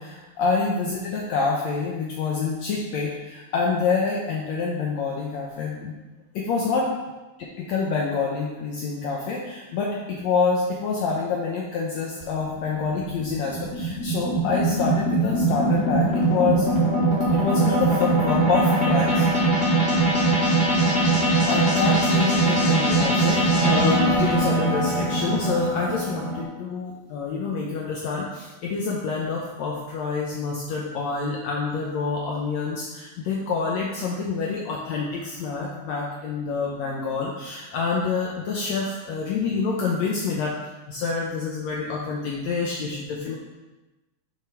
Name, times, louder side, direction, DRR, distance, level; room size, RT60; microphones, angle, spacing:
voice 1, 0.0-5.9 6.3-6.9 7.6-16.7 17.3-19.3 21.5-40.5 40.9-43.4, left 4 dB, 70° left, -3 dB, 2.0 m, -27 dB
sound 1, 12.2-26.4, right 2 dB, 20° left, 2.6 m, -21 dB
8.0 x 5.1 x 5.9 m, 1.1 s
omnidirectional pair, 3.6 m